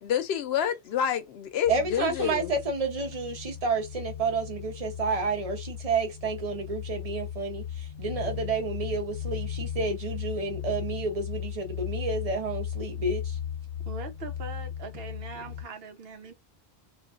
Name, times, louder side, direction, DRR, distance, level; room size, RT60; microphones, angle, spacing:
voice 1, 0.0-2.5, left 9 dB, 85° left, 0.8 m, -28 dB
sound 1, 1.6-15.6, left 9 dB, 55° left, 0.9 m, -37 dB
voice 2, 1.7-13.4, right 4 dB, 40° right, 0.7 m, -30 dB
voice 3, 13.9-16.3, right 4 dB, 75° right, 0.9 m, -41 dB
2.4 x 2.3 x 2.4 m
omnidirectional pair, 1.0 m